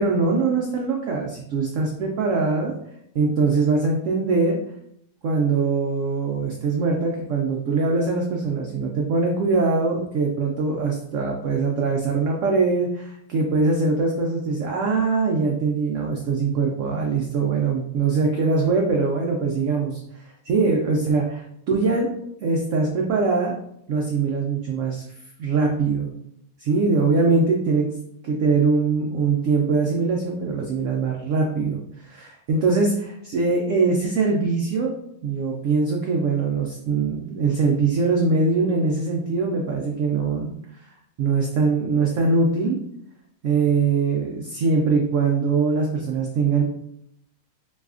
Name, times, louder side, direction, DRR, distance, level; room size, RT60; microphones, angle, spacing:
voice 1, 0.0-2.7 3.1-4.6 5.2-21.2 21.7-22.1 22.4-23.5 23.9-25.0 25.4-26.2 26.6-27.9 28.2-34.9 35.2-40.5 41.2-42.8 43.4-46.6, right 4 dB, 85° right, 0 dB, 0.6 m, -22 dB
4.8 x 2.3 x 2.4 m, 0.76 s
omnidirectional pair, 1.9 m